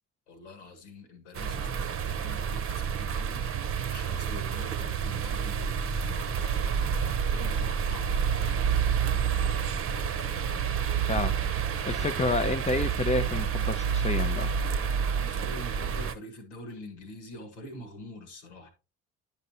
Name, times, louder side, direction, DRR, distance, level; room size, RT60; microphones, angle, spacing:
voice 1, 0.3-3.5 3.9-6.8 7.3-8.1 15.1-18.7, left 1 dB, 80° left, 1.6 m, -45 dB
sound 1, 1.3-16.1, right 7 dB, 40° right, 0.8 m, -29 dB
voice 2, 11.1-14.5, left 3 dB, 20° left, 0.5 m, -30 dB
10.0 x 5.5 x 2.8 m
hypercardioid pair, 50°, 34 cm